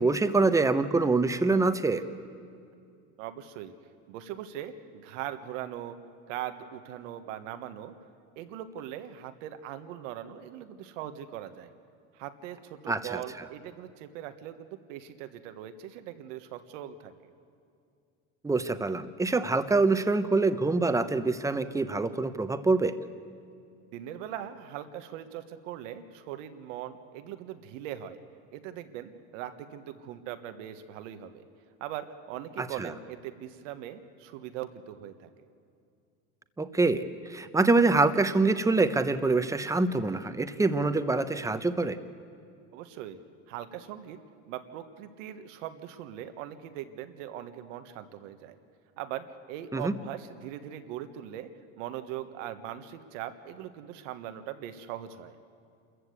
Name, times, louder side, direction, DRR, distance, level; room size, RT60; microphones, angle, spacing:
voice 1, 0.0-2.0 12.9-13.2 18.4-23.0 32.6-32.9 36.6-42.0 49.7-49.9, right 3 dB, 10° right, 11 dB, 0.9 m, -25 dB
voice 2, 3.2-3.7 4.1-6.0 6.3-7.9 8.4-11.7 12.1-17.1 23.9-28.2 28.5-31.5 31.8-35.3 42.7-43.2 43.5-48.6 49.0-51.5 51.8-55.4, right 11 dB, 90° right, 9 dB, 1.5 m, -40 dB
27.5 x 14.5 x 8.4 m, 2.4 s
supercardioid pair, 120°, 36 cm